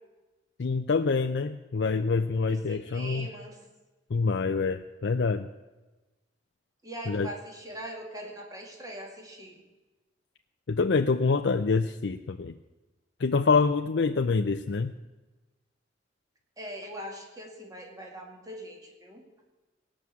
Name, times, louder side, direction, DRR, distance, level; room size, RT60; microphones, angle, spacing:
voice 1, 0.6-3.3 4.1-5.5 7.1-7.3 10.7-12.5 13.2-14.9, left 4 dB, 65° left, 6 dB, 0.5 m, -26 dB
voice 2, 2.4-3.6 6.8-9.6 16.6-19.2, right 1 dB, 20° right, 1 dB, 2.1 m, -41 dB
18.0 x 6.2 x 8.3 m, 1.2 s
head